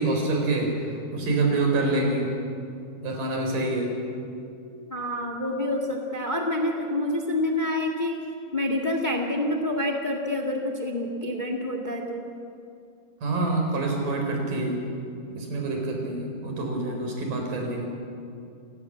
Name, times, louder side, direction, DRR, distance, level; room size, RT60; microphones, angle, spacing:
voice 1, 0.0-2.3 3.0-4.0 13.2-14.8 15.3-17.8, right 2 dB, 90° right, 1 dB, 5.8 m, -26 dB
voice 2, 4.9-8.2 8.5-12.3, left 1 dB, 20° left, 3 dB, 1.5 m, -27 dB
29.0 x 17.0 x 7.5 m, 2.5 s
omnidirectional pair, 3.7 m